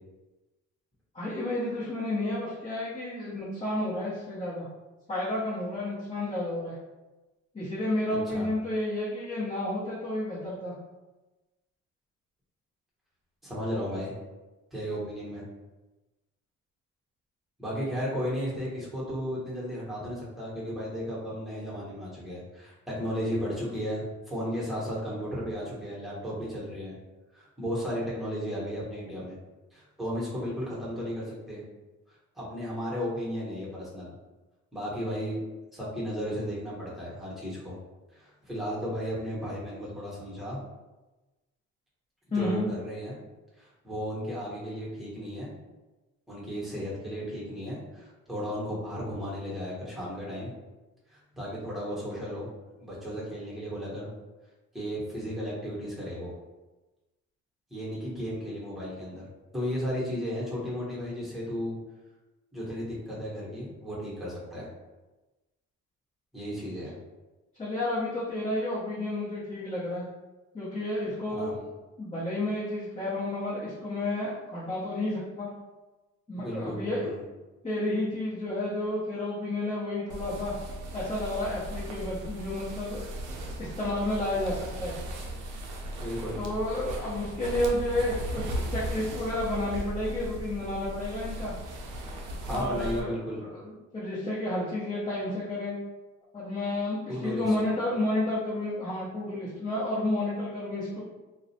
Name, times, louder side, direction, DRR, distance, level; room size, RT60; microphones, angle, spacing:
voice 1, 1.1-4.7 5.1-6.7 7.5-10.7 42.3-42.7 67.6-70.0 70.5-71.6 72.0-75.5 76.3-77.1 77.6-80.5 80.9-83.1 83.6-84.9 86.4-91.5 92.5-95.8 96.3-101.0, left 1 dB, 20° left, -10 dB, 0.8 m, -31 dB
voice 2, 8.1-8.5 13.4-14.1 14.7-15.4 17.6-26.9 27.3-29.4 29.7-31.6 32.4-34.1 34.7-35.4 35.7-37.8 38.1-40.6 42.3-43.1 43.6-45.5 46.3-50.5 51.1-52.5 52.8-54.1 54.7-56.3 57.7-59.2 59.5-61.8 62.5-64.7 66.3-66.9 71.3-71.5 76.4-77.2 86.0-86.4 92.5-93.4 97.1-97.5, equal, ahead, -7 dB, 1.0 m, -34 dB
sound 1, 80.1-93.0, right 1 dB, 90° right, 0.5 m, -37 dB
2.4 x 2.1 x 2.7 m, 1.1 s
cardioid pair, 90°, 30 cm